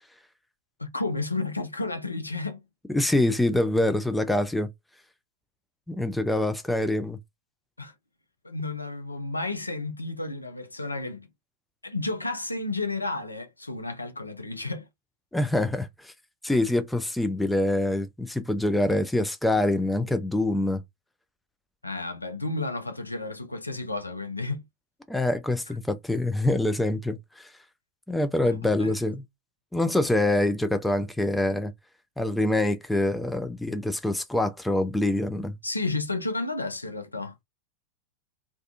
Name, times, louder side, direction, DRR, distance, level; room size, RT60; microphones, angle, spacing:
voice 1, 0.8-2.6 7.8-7.9 8.4-11.3 11.8-14.9 21.8-24.6 28.4-28.9 35.6-37.3, left 2 dB, 85° left, 0.4 m, -32 dB
voice 2, 2.9-4.7 5.9-7.2 15.3-16.1 16.4-20.8 25.1-27.5 28.1-29.2 29.7-31.7 32.2-35.6, left 1 dB, 5° left, 0.4 m, -25 dB
2.5 x 2.3 x 2.4 m
figure-of-eight pair, 90°, 0 cm